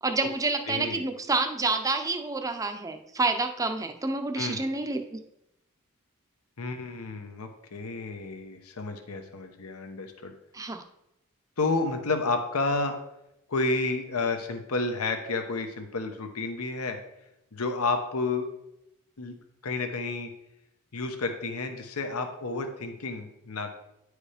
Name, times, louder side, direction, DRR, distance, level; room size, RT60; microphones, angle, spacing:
voice 1, 0.0-5.2 10.5-10.8, right 3 dB, 15° right, 6 dB, 0.6 m, -28 dB
voice 2, 0.7-1.1 4.3-4.6 6.6-10.3 11.6-13.0 13.5-17.0 17.5-18.5 19.2-19.3 19.6-20.3 20.9-23.8, left 3 dB, 80° left, 6 dB, 1.0 m, -30 dB
9.9 x 4.9 x 5.0 m, 0.84 s
head